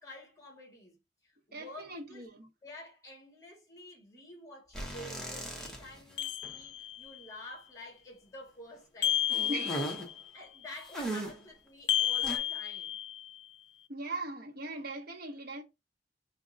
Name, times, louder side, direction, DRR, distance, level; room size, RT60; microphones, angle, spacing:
voice 1, 0.0-2.3 2.6-9.2 9.7-10.0 10.3-13.0, left 1 dB, 20° left, 1.5 m, -49 dB
voice 2, 1.5-2.5 9.5-9.7 13.9-15.6, right 2 dB, 55° right, 0.9 m, -39 dB
sound 1, 4.7-6.1 6.4-6.5 9.3-10.1 10.9-11.5 12.2-12.4, right 1 dB, 5° left, 0.7 m, -38 dB
sound 2, 6.2-7.2 9.0-10.3 11.9-13.4, left 11 dB, 70° left, 0.3 m, -32 dB
4.9 x 2.1 x 2.5 m
head